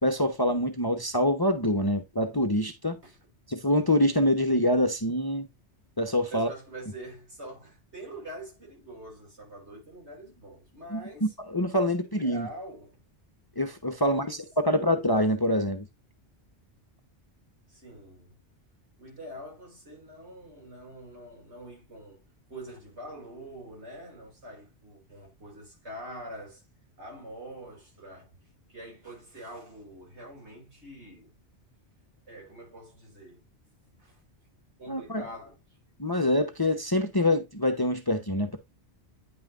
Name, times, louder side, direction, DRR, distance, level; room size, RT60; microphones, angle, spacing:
voice 1, 0.0-3.0 3.5-5.5 6.0-6.5 10.9-11.0 11.5-12.5 13.6-15.9 34.9-35.2 36.0-38.6, left 1 dB, 25° left, 0.8 m, -25 dB
voice 2, 6.3-11.3 12.0-13.0 14.0-14.8 17.7-18.4 19.0-22.2 22.5-26.6 27.0-28.3 28.7-31.3 32.3-33.5 33.9-34.2 34.8-35.6, right 1 dB, 75° right, 4.9 m, -45 dB
9.7 x 5.6 x 2.4 m
omnidirectional pair, 1.2 m